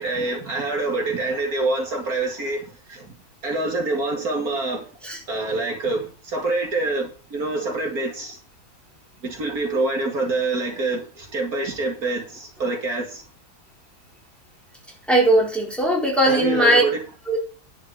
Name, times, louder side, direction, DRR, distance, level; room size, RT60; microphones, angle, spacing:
voice 1, 0.0-3.1 3.4-4.9 5.3-8.4 9.2-13.2 16.3-17.0, right 2 dB, 65° right, 2.6 m, -26 dB
voice 2, 15.1-16.8 17.3-17.4, right 1 dB, ahead, 4.1 m, -18 dB
11.0 x 5.6 x 6.4 m
omnidirectional pair, 1.7 m